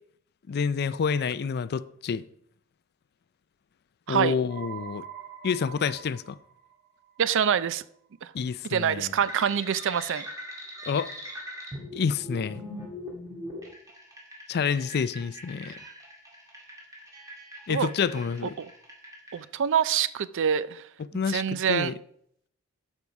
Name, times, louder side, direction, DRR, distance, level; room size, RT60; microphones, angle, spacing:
voice 1, 0.5-2.2 4.1-5.0 5.4-6.4 8.3-9.1 10.9-11.1 11.9-12.6 14.5-15.7 17.7-18.5 21.1-21.9, left 6 dB, 50° left, 0.4 m, -28 dB
sound 1, 4.5-7.8, right 9 dB, 35° right, 3.2 m, -44 dB
voice 2, 7.2-7.8 8.2-8.3 8.7-10.2 17.7-17.9 18.6-18.7 19.3-20.8 21.3-22.0, right 8 dB, 60° right, 0.4 m, -25 dB
sound 2, 9.2-19.4, equal, 15° right, 2.1 m, -41 dB
12.0 x 5.5 x 4.6 m
head